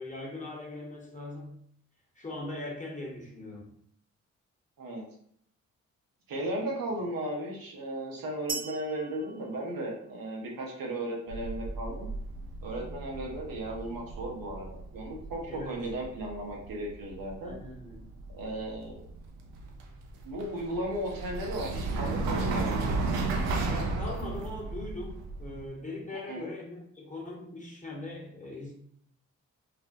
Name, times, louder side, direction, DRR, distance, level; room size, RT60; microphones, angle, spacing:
voice 1, 0.0-1.6 2.1-3.7 15.5-15.8 17.4-18.0 23.6-28.7, left 2 dB, 20° left, -3 dB, 1.0 m, -40 dB
voice 2, 6.3-12.1 12.6-14.7 14.9-17.6 18.3-19.0 20.2-23.2 26.3-26.5, right 1 dB, 70° right, -2 dB, 0.8 m, -35 dB
sound 1, 8.5-10.4, right 5 dB, 25° right, 0.4 m, -40 dB
sound 2, 11.3-25.7, right 3 dB, 85° right, 0.5 m, -34 dB
2.5 x 2.1 x 2.5 m, 0.65 s
hypercardioid pair, 40°, 37 cm